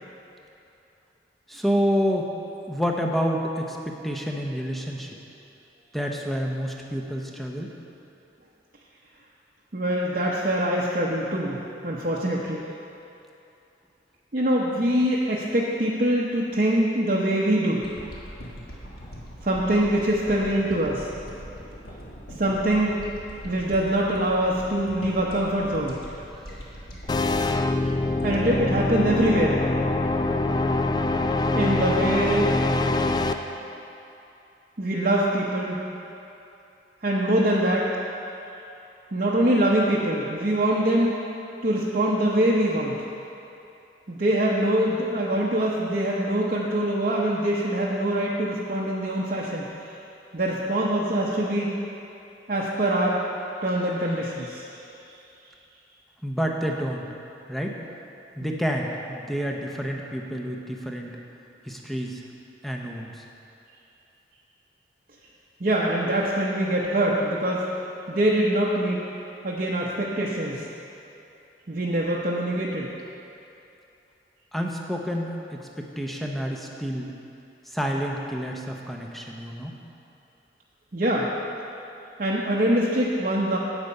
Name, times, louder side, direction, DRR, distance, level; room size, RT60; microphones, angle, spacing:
voice 1, 1.5-2.3 2.7-5.1 5.9-7.7 56.2-57.1 57.5-57.8 58.4-61.1 61.7-62.2 62.6-63.2 74.5-77.1 77.7-79.7, equal, ahead, 0 dB, 0.7 m, -28 dB
voice 2, 9.7-12.7 14.3-17.8 19.4-21.1 22.4-23.1 23.4-25.9 28.2-29.6 31.6-32.5 34.8-35.8 37.0-37.9 39.1-41.2 41.6-43.0 44.1-50.0 50.3-51.7 52.5-53.2 53.6-54.7 58.4-58.6 65.6-67.7 68.1-69.0 69.4-70.6 71.7-72.9 80.9-81.3 82.2-83.6, right 1 dB, 45° right, -5 dB, 0.8 m, -24 dB
sound 1, 17.8-30.2 30.6-30.7, equal, 55° left, 1.5 m, -42 dB
sound 2, 27.1-33.3, left 2 dB, 25° left, 0.3 m, -24 dB
8.4 x 8.1 x 5.4 m, 2.8 s
head